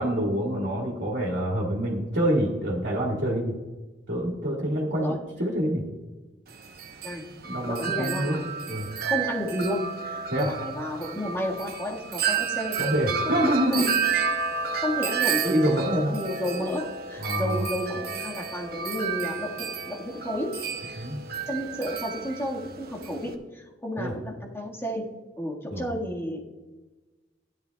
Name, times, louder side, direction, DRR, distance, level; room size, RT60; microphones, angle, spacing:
voice 1, 0.0-3.5 4.1-5.8 7.5-8.4 8.7-8.9 10.3-10.5 12.8-13.9 15.4-16.2 17.2-17.7 21.0-21.2 24.0-24.1 25.7-25.8, equal, 90° right, -3 dB, 1.9 m, -26 dB
Wind chime, 6.5-23.3, right 6 dB, 60° right, 0.9 m, -31 dB
voice 2, 7.7-8.5 9.0-12.8 13.3-13.9 14.8-15.8 16.1-20.5 20.8-21.1 21.5-25.1 25.4-26.4, equal, 15° left, -3 dB, 1.7 m, -32 dB
15.5 x 10.5 x 2.3 m, 1.2 s
head